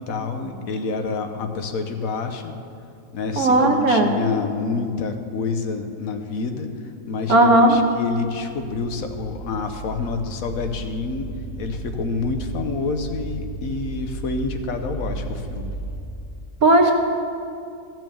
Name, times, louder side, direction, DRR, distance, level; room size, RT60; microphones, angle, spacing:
voice 1, 0.0-2.5 3.1-15.7, left 4 dB, 75° left, 6 dB, 1.3 m, -28 dB
voice 2, 3.4-4.1 7.3-7.7 16.6-16.9, right 2 dB, 85° right, 3 dB, 1.6 m, -15 dB
sound 1, 7.7-16.0, right 2 dB, 30° right, 1.7 m, -34 dB
14.0 x 6.2 x 6.9 m, 2.5 s
omnidirectional pair, 1.5 m